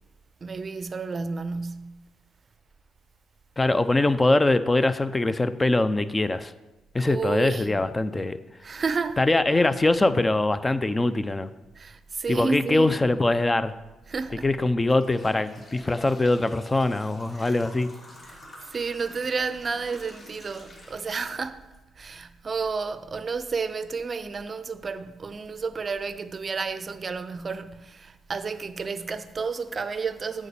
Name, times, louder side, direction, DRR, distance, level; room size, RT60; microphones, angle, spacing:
voice 1, 0.4-2.1 7.0-7.9 8.6-9.2 11.8-12.9 14.1-14.5 17.4-17.6 18.7-21.7 22.0-30.5, right 4 dB, 35° right, 0.5 m, -31 dB
voice 2, 3.6-6.5 6.9-8.4 9.2-11.5 12.3-13.7 14.4-17.9, left 2 dB, 20° left, 0.5 m, -23 dB
sound 1, 14.9-21.8 22.2-22.3 23.2-23.3 23.8-23.9 24.3-24.5, left 1 dB, 40° left, 2.8 m, -48 dB
8.3 x 5.0 x 7.0 m
cardioid pair, 90°, 0 cm